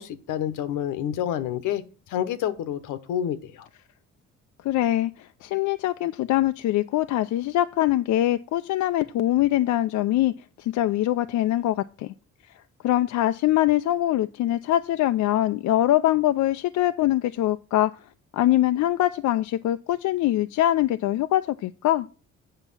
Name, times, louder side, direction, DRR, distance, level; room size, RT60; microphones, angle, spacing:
voice 1, 0.0-3.7, left 10 dB, 90° left, 12 dB, 1.1 m, -28 dB
voice 2, 4.6-10.3 10.6-12.1 12.8-17.9 18.3-22.1, left 14 dB, 75° left, 10 dB, 0.5 m, -23 dB
8.2 x 5.6 x 5.5 m, 0.35 s
cardioid pair, 90°, 30 cm